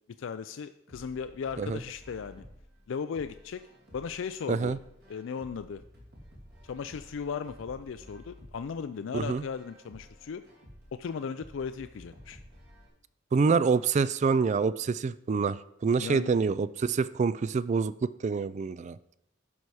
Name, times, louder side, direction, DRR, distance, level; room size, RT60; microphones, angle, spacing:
voice 1, 0.2-2.4 2.9-3.6 3.9-4.8 5.1-5.8 6.6-10.4 10.9-12.4 16.0-16.3, left 6 dB, 70° left, 10 dB, 0.4 m, -36 dB
sound 1, 0.9-12.9, equal, 55° right, 2.6 m, -53 dB
voice 2, 13.3-19.0, right 5 dB, 35° right, 17 dB, 0.3 m, -26 dB
11.0 x 5.5 x 4.8 m, 0.78 s
head